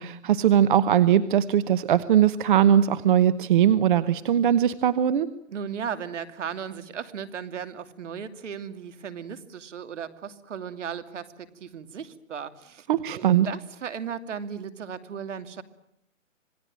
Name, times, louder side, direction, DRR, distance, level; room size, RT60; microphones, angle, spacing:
voice 1, 0.0-5.3 12.9-13.5, right 10 dB, 40° right, 14 dB, 1.0 m, -20 dB
voice 2, 5.5-12.9 13.2-15.6, right 7 dB, 60° right, 11 dB, 2.9 m, -36 dB
27.5 x 20.0 x 9.2 m, 0.76 s
hypercardioid pair, 150°, 40 cm